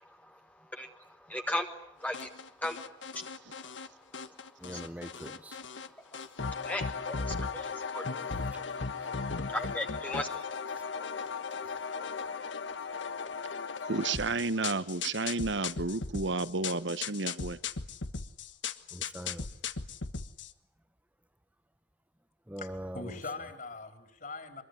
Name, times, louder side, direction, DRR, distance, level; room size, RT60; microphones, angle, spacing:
voice 1, 0.0-0.4 0.7-1.7 2.0-3.0 3.3-4.8 5.7-6.0 6.5-10.5, left 1 dB, 10° left, 4 dB, 1.4 m, -39 dB
sound 1, 2.1-3.9 4.1-5.9 6.1-20.5, left 5 dB, 85° left, 1.4 m, -37 dB
voice 2, 4.6-5.6 18.9-19.5 22.5-23.2, equal, 10° right, 11 dB, 1.0 m, -42 dB
voice 3, 13.9-17.6, right 3 dB, 80° right, 14 dB, 1.2 m, -31 dB
voice 4, 22.6-24.6, left 3 dB, 50° left, 5 dB, 4.4 m, -42 dB
24.0 x 22.5 x 10.0 m, 0.79 s
head